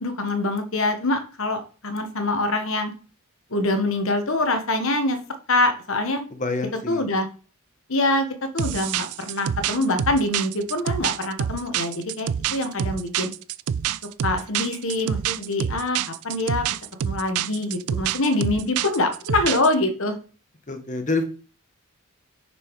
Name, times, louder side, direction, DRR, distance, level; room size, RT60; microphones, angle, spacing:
voice 1, 0.0-2.9 3.5-5.2 5.5-6.2 6.9-7.3 7.9-8.3 8.5-13.3 14.2-16.7 17.0-20.1, left 2 dB, 60° left, 7 dB, 1.3 m, -24 dB
voice 2, 6.4-7.0 20.7-21.3, left 3 dB, 35° left, 7 dB, 1.2 m, -26 dB
sound 1, 8.6-19.7, right 9 dB, 85° right, 0.4 m, -27 dB
6.4 x 6.1 x 4.7 m, 0.38 s
head